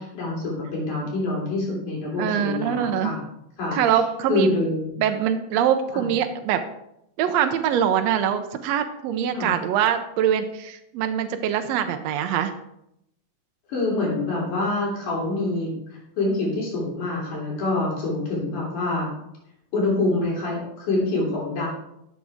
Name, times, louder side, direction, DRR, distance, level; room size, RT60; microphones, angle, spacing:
voice 1, 0.0-3.2 3.6-3.8 4.3-4.9 5.9-6.0 9.3-9.5 13.7-19.1 19.7-21.7, left 2 dB, 65° left, -3 dB, 4.8 m, -26 dB
voice 2, 2.2-3.1 3.7-4.5 5.0-6.6 7.2-12.5, right 9 dB, 90° right, 7 dB, 1.5 m, -23 dB
12.0 x 7.4 x 3.5 m, 0.81 s
omnidirectional pair, 3.8 m